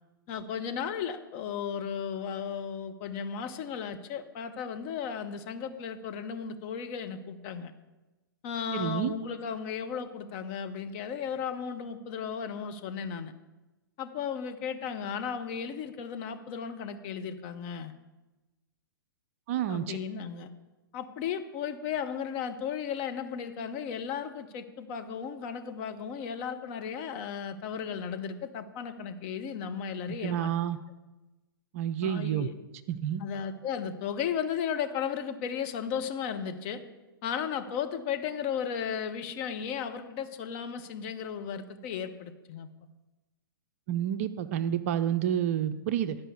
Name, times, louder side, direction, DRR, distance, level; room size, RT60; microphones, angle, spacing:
voice 1, 0.3-7.7 8.4-13.3 14.0-17.9 19.7-20.5 20.9-30.5 32.0-32.5 33.2-36.8 37.2-42.7, left 7 dB, 35° left, 7 dB, 0.8 m, -35 dB
voice 2, 8.7-9.1 19.5-20.0 30.2-30.8 31.7-32.5 32.9-33.2 43.9-46.2, right 10 dB, 40° right, 11 dB, 0.5 m, -29 dB
11.0 x 5.5 x 8.0 m, 1.1 s
figure-of-eight pair, 110°, 12 cm